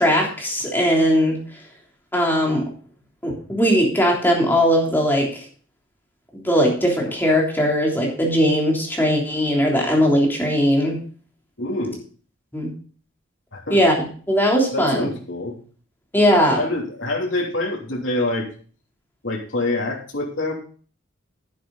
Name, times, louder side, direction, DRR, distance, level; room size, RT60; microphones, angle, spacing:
voice 1, 0.0-1.4 2.1-2.6 3.2-5.3 6.4-11.0 12.5-12.7 13.7-14.0 14.3-15.1 16.1-16.6, equal, 10° left, -1 dB, 3.3 m, -19 dB
voice 2, 11.6-12.0 13.5-13.8 14.7-15.5 16.5-18.5 19.2-20.5, left 2 dB, 80° left, -1 dB, 3.1 m, -26 dB
10.5 x 10.5 x 4.0 m, 0.42 s
head